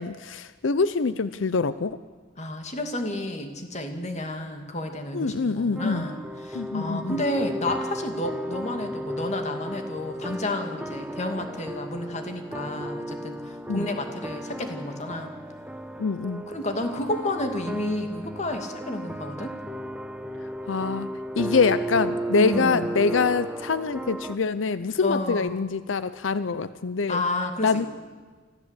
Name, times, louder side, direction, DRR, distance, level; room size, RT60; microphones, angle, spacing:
voice 1, 0.0-2.0 5.1-6.1 6.5-7.2 13.7-13.9 16.0-16.4 20.7-21.1 21.4-27.2 27.6-27.9, left 4 dB, 90° left, 14 dB, 0.6 m, -25 dB
voice 2, 2.4-15.3 16.5-19.5 22.4-23.0 25.0-25.6 27.1-27.9, left 1 dB, 40° left, 5 dB, 2.4 m, -31 dB
sound 1, 5.8-24.4, right 1 dB, 5° right, 0.9 m, -34 dB
25.0 x 15.0 x 8.2 m, 1.5 s
head